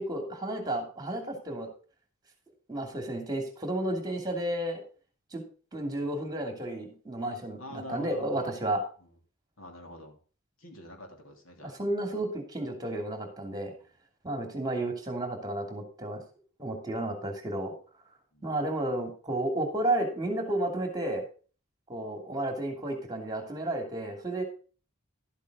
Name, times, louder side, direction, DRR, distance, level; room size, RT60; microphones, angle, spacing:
voice 1, 0.0-1.7 2.7-4.8 5.3-5.4 5.7-8.8 11.8-13.7 14.2-16.2 16.6-17.7 18.4-21.2 21.9-24.4, right 1 dB, 20° right, 4 dB, 2.8 m, -32 dB
voice 2, 7.6-8.5 9.0-9.1 9.6-10.2 10.6-11.8 18.3-18.6, left 1 dB, 75° left, 3 dB, 3.0 m, -46 dB
12.5 x 8.2 x 3.8 m, 0.38 s
head